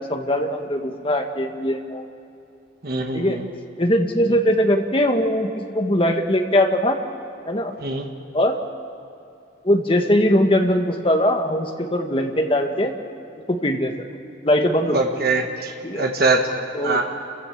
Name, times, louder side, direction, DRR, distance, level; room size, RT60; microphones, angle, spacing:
voice 1, 0.0-2.0 3.1-3.4 3.8-7.0 7.5-7.7 8.3-8.6 9.6-12.9 13.5-13.9 14.4-15.0 15.8-16.0 16.7-17.2, equal, 30° left, 4 dB, 1.4 m, -21 dB
voice 2, 2.8-3.4 7.8-8.1 14.9-17.1, right 3 dB, 55° right, 3 dB, 1.5 m, -23 dB
29.0 x 15.5 x 7.4 m, 2.7 s
head